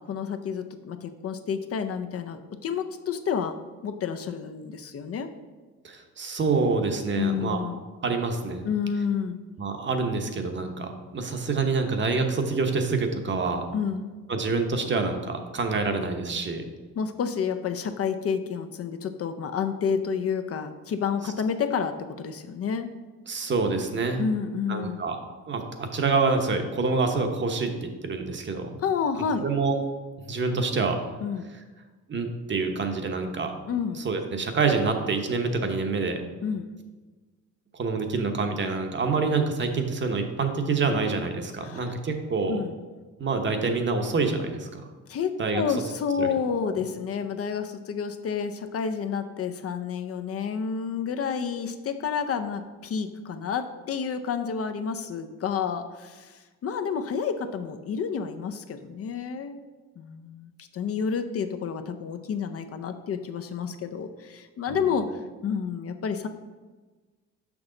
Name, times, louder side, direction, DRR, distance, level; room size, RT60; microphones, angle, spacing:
voice 1, 0.0-3.6 3.8-5.3 7.1-7.8 8.6-9.4 13.7-14.1 17.0-22.9 24.2-25.0 28.8-29.4 31.2-31.4 33.7-34.0 36.4-36.7 41.6-41.8 42.5-42.7 45.1-59.6 60.0-66.3, left 6 dB, 50° left, 8 dB, 0.5 m, -30 dB
voice 2, 5.8-7.6 8.0-8.7 9.6-13.6 14.3-16.6 23.3-24.2 24.7-25.2 25.5-28.7 29.4-29.8 30.3-31.0 32.1-33.5 33.9-36.2 37.7-42.6 43.2-44.8 45.4-45.8 46.2-46.3 64.7-65.0, right 4 dB, 35° right, 5 dB, 0.9 m, -27 dB
6.1 x 6.0 x 3.8 m, 1.3 s
cardioid pair, 110°, 31 cm